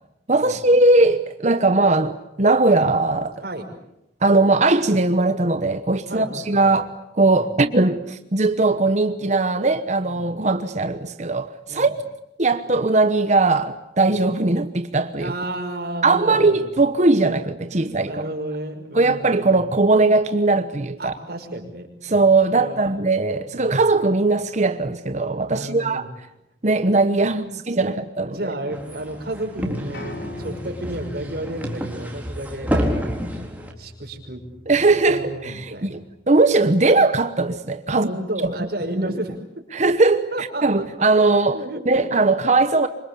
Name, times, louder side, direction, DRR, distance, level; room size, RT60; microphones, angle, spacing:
voice 1, 0.3-3.4 4.2-12.0 12.4-15.3 16.0-18.1 18.9-21.1 22.0-26.0 26.6-28.4 34.7-36.0 36.3-38.1 38.9-39.1 39.7-40.3 40.6-42.9, right 3 dB, 40° right, 1.1 m, -19 dB
voice 2, 6.1-6.7 7.3-7.4 10.0-10.3 11.7-11.9 14.1-14.2 15.2-16.6 17.7-19.6 21.0-23.0 23.5-23.9 25.5-26.1 27.3-32.9 33.8-34.4 35.1-36.0 37.9-39.6 40.3-40.9 41.5-42.1, right 1 dB, 60° right, 5.5 m, -33 dB
sound 1, 28.7-33.7, equal, 10° right, 4.0 m, -29 dB
Piano, 29.9-36.1, left 2 dB, 65° left, 5.2 m, -40 dB
27.0 x 25.0 x 8.5 m
head